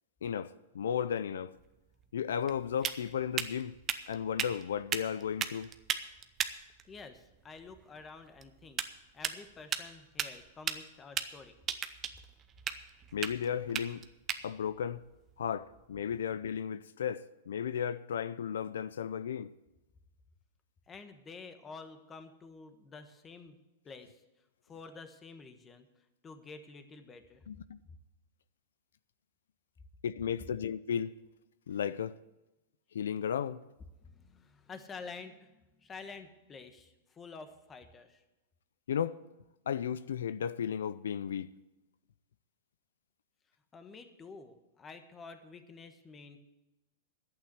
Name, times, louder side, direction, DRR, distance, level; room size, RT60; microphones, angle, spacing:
voice 1, 0.2-1.5 2.1-3.8 4.1-5.7 13.1-14.1 14.4-15.0 15.4-19.5 27.5-27.8 30.0-31.1 31.7-32.2 32.9-33.6 38.9-39.2 39.7-41.5, left 8 dB, 90° left, 0.4 m, -34 dB
sound 1, 1.6-16.3, right 8 dB, 25° right, 0.7 m, -39 dB
voice 2, 6.9-8.8 9.1-11.6 20.9-23.6 23.8-24.2 24.7-25.9 26.2-27.4 34.0-38.2 43.7-46.4, left 4 dB, 15° left, 1.1 m, -49 dB
11.0 x 8.8 x 8.2 m
supercardioid pair, 150°, 0 cm